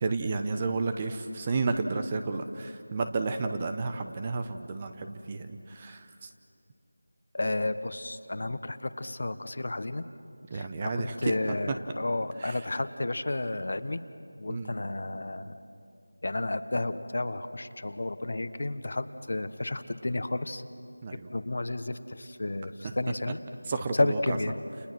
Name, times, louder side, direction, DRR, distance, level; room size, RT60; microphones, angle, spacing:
voice 1, 0.0-6.3 10.5-11.3 12.4-12.5 14.5-14.7 21.0-21.3 23.7-24.4, right 4 dB, 20° right, 8 dB, 0.9 m, -32 dB
voice 2, 7.3-10.1 10.5-14.0 14.4-15.5 16.2-20.6 21.3-23.4 23.9-24.5, left 2 dB, 55° left, 11 dB, 1.3 m, -32 dB
30.0 x 29.5 x 6.2 m, 2.6 s
figure-of-eight pair, 170°, 0 cm